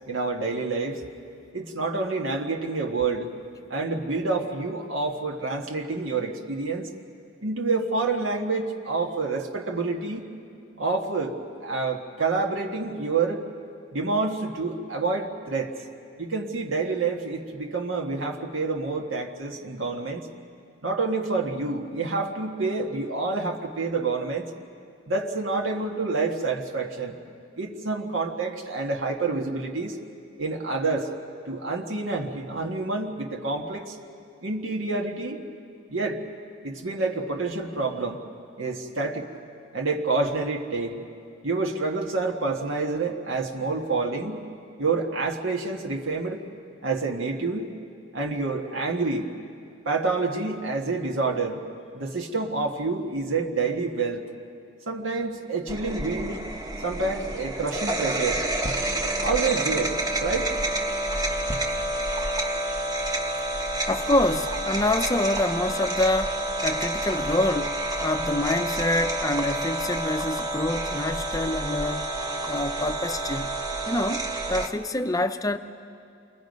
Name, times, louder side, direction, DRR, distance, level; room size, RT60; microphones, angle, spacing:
voice 1, 0.1-1.0 1.5-3.3 3.7-6.9 7.4-10.2 10.8-11.3 11.6-13.4 13.9-15.7 16.2-20.3 20.8-24.5 25.1-27.2 27.6-30.0 30.4-31.1 31.5-33.9 34.4-35.4 35.9-36.3 36.6-38.2 38.6-39.3 39.7-41.0 41.4-44.4 44.8-46.4 46.8-47.7 48.1-49.3 49.8-51.6 51.9-54.2 54.9-56.4 56.8-58.4 59.2-60.5, right 3 dB, 70° right, 1 dB, 1.6 m, -28 dB
sound 1, 55.7-74.7, right 1 dB, 20° right, 1.2 m, -29 dB
voice 2, 63.9-72.1 72.5-75.6, left 1 dB, 15° left, 9 dB, 0.6 m, -26 dB
29.0 x 23.0 x 5.3 m, 2.4 s
head